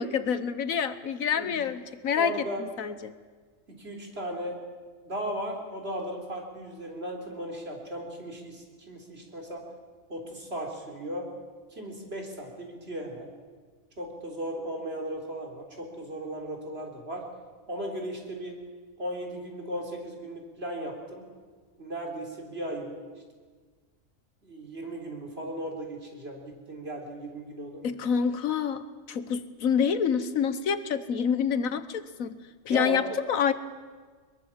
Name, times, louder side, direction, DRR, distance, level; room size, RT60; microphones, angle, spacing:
voice 1, 0.0-2.3 2.8-3.1 27.8-28.8 29.1-32.4 32.6-33.5, left 7 dB, 85° left, 13 dB, 1.5 m, -27 dB
voice 2, 2.2-2.6 3.7-4.6 5.0-9.6 10.1-11.3 11.7-13.3 14.0-17.3 17.7-18.6 19.0-21.2 21.8-23.0 24.4-27.8 32.7-33.0, right 1 dB, 50° right, 1 dB, 4.1 m, -36 dB
22.5 x 22.0 x 7.4 m, 1.5 s
omnidirectional pair, 1.4 m